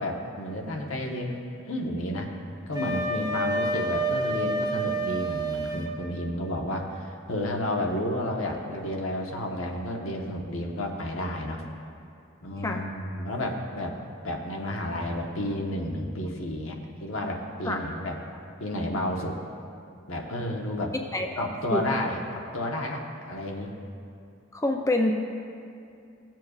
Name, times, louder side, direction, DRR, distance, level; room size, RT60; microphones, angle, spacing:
voice 1, 0.0-1.4 1.7-2.3 2.7-11.6 12.4-13.9 14.2-18.2 18.6-19.4 20.1-20.9 21.4-23.7, left 1 dB, 85° left, 1 dB, 1.1 m, -31 dB
Wind instrument woodwind instrument, 2.7-5.9, right 1 dB, 20° right, 0.9 m, -28 dB
voice 2, 21.1-21.8 24.5-25.1, left 1 dB, 15° left, 3 dB, 0.5 m, -27 dB
16.0 x 7.5 x 2.4 m, 2.5 s
head